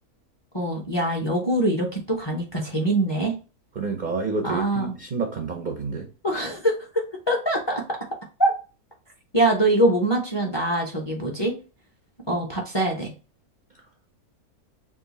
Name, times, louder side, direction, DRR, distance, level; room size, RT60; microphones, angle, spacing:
voice 1, 0.5-3.3 4.4-4.9 6.2-8.0 8.4-8.5 9.3-11.5 12.3-13.1, right 1 dB, 25° left, 0.7 m, -23 dB
voice 2, 3.8-6.1, right 4 dB, 55° right, 0.5 m, -29 dB
3.6 x 2.7 x 4.0 m
omnidirectional pair, 1.6 m